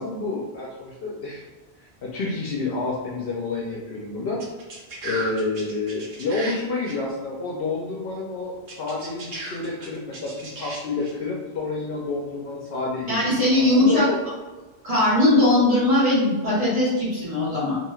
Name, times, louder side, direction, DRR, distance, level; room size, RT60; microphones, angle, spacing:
voice 1, 0.0-1.4 2.0-4.4 5.0-13.2 13.6-14.2, left 3 dB, 70° left, -3 dB, 0.7 m, -29 dB
sound 1, 4.4-6.5 6.8-6.9 8.7-11.1, right 2 dB, 70° right, 1.0 m, -35 dB
voice 2, 13.1-14.1 14.8-17.8, left 1 dB, 35° right, -9 dB, 1.1 m, -19 dB
3.1 x 2.5 x 2.3 m, 1.2 s
omnidirectional pair, 1.1 m